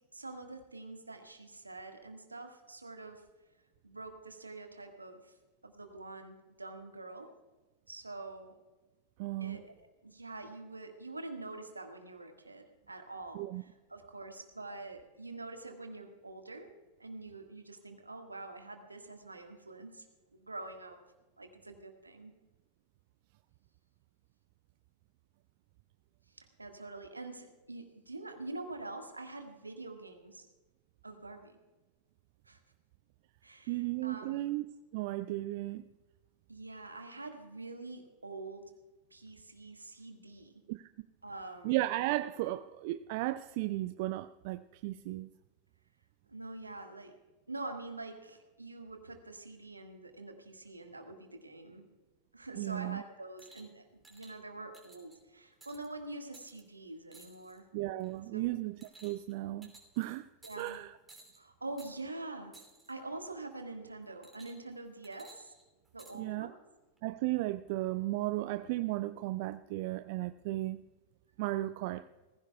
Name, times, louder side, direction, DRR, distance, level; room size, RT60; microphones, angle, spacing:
voice 1, 0.1-3.2 3.8-5.3 5.6-7.3 7.9-8.6 9.4-9.8 10.0-16.7 17.0-20.0 20.3-21.0 21.4-22.3 26.4-30.5 31.0-31.6 32.4-32.6 33.4-34.4 36.5-38.7 39.1-40.6 41.2-41.8 46.3-47.2 47.5-51.9 52.3-57.7 58.3-58.5 60.4-60.8 61.4-62.6 62.9-65.5 65.9-66.5, right 2 dB, 80° right, 1.7 m, -45 dB
voice 2, 9.2-9.6 13.3-13.6 33.7-34.6 34.9-35.8 40.7-40.9 41.6-45.3 52.6-53.0 57.7-60.3 60.6-60.9 66.1-66.5 67.0-70.8 71.4-72.1, right 17 dB, 50° right, 0.4 m, -35 dB
sound 1, 53.4-53.7 54.0-54.3 54.7-55.2 55.6-55.9 56.3-56.6 57.1-57.6 58.0-58.3 58.8-59.3 59.6-60.0 60.4-60.8 61.1-61.4 61.8-61.9 62.5-62.9 64.2-64.7 65.0-66.1 67.0-67.1, right 3 dB, 10° right, 2.9 m, -57 dB
19.5 x 15.5 x 2.3 m
figure-of-eight pair, 90°, 0 cm